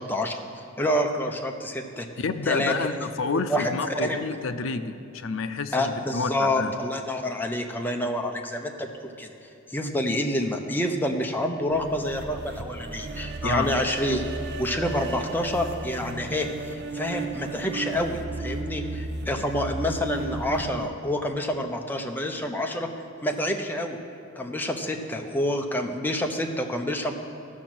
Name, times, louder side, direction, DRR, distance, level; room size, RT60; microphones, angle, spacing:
voice 1, 0.0-2.1 2.5-2.9 3.2-4.2 5.7-9.3 9.7-14.3 14.6-22.9 23.2-24.0 24.3-27.1, left 1 dB, 10° left, 3 dB, 0.7 m, -28 dB
voice 2, 2.2-6.7 13.4-13.7, left 4 dB, 70° left, 10 dB, 0.5 m, -29 dB
sound 1, 11.7-20.9, right 3 dB, 55° right, 0.6 m, -34 dB
13.5 x 6.3 x 6.1 m, 2.7 s
head